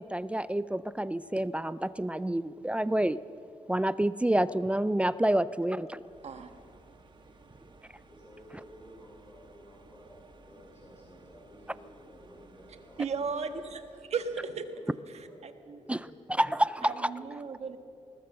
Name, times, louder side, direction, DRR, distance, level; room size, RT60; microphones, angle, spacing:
voice 1, 0.0-3.2 3.7-6.0 15.9-16.0 16.4-17.1, right 1 dB, 10° right, 16 dB, 0.4 m, -28 dB
sound 1, 5.9-14.0, right 3 dB, 40° right, 1.4 m, -57 dB
voice 2, 8.1-13.4 13.9-14.3 14.5-14.8 15.1-15.4 15.8-17.3, equal, 20° left, -4 dB, 5.5 m, -54 dB
voice 3, 13.0-13.8 14.1-14.6 15.1-15.9 16.5-16.6 16.8-17.8, right 5 dB, 60° right, 8 dB, 1.5 m, -35 dB
21.0 x 19.5 x 6.7 m, 2.6 s
wide cardioid pair, 135°, 13 cm